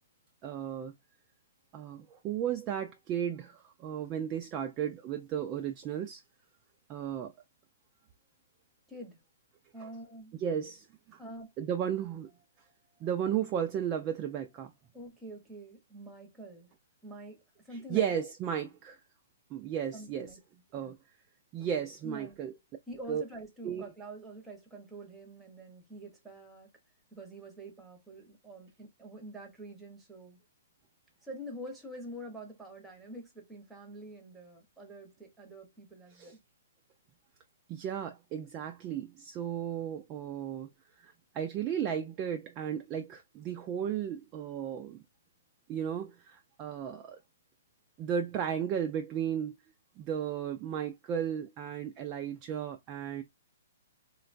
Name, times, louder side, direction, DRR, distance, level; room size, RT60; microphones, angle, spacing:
voice 1, 0.4-0.9 1.7-6.2 6.9-7.3 9.8-9.9 10.3-11.2 11.6-12.3 13.0-14.7 17.7-19.0 19.5-20.3 20.7-21.0 21.5-22.5 23.1-23.2 23.6-23.9 36.1-36.3 37.7-40.7 41.0-45.0 45.7-47.2 48.0-49.5 50.0-53.2, right 9 dB, 20° right, 0.3 m, -34 dB
voice 2, 8.9-9.2 9.7-10.3 11.2-11.6 14.9-16.7 17.0-18.2 19.9-20.4 20.8-20.9 22.0-22.5 22.9-26.7 27.1-30.4 31.2-36.4, right 1 dB, 5° right, 0.8 m, -46 dB
3.8 x 2.2 x 2.5 m
hypercardioid pair, 165°, 0 cm